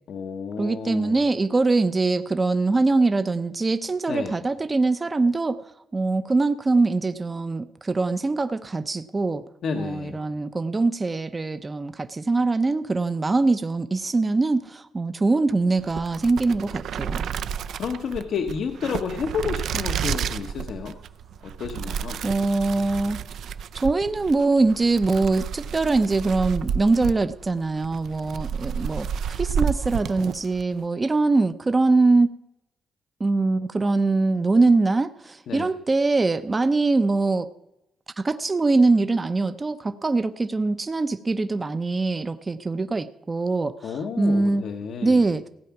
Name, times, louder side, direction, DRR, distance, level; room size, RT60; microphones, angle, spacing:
voice 1, 0.1-1.2 4.1-4.4 9.6-10.2 17.7-21.0 21.4-22.2 35.5-35.7 43.8-45.2, left 6 dB, 65° left, 5 dB, 1.0 m, -31 dB
voice 2, 0.6-5.6 5.9-9.4 9.8-17.3 22.2-23.2 23.7-29.1 29.4-32.3 33.2-37.5 38.2-44.6 45.0-45.4, right 3 dB, 25° right, 11 dB, 0.6 m, -23 dB
sound 1, 15.8-30.7, right 7 dB, 70° right, 0.6 m, -31 dB
16.0 x 8.4 x 5.9 m, 0.89 s
cardioid pair, 90°, 0 cm